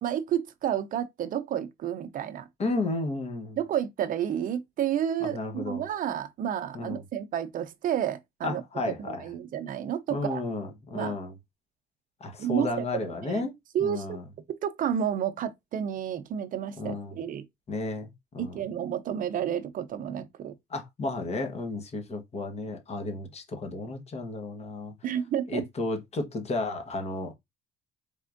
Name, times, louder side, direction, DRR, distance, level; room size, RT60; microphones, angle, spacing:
voice 1, 0.0-2.5 3.6-8.6 9.0-10.4 10.9-11.1 12.4-13.5 13.7-14.2 14.5-17.5 18.4-20.6 25.0-25.6, right 9 dB, 55° right, 0.6 m, -31 dB
voice 2, 2.6-3.6 5.2-5.8 6.7-7.0 8.4-9.2 10.1-11.3 12.2-13.5 13.8-14.2 16.8-17.1 17.7-18.6 20.7-24.9 25.5-27.3, left 2 dB, 40° left, 1.2 m, -33 dB
4.3 x 3.5 x 2.5 m
cardioid pair, 110°, 17 cm